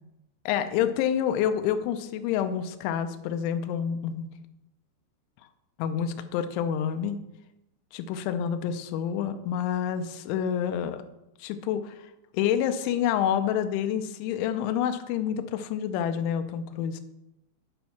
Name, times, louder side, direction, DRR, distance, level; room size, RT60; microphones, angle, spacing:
voice 1, 0.5-4.3 5.8-7.2 7.9-11.0 11.4-12.1 12.3-17.0, left 9 dB, 90° left, 9 dB, 3.0 m, -28 dB
8.8 x 5.2 x 5.7 m, 0.89 s
omnidirectional pair, 5.3 m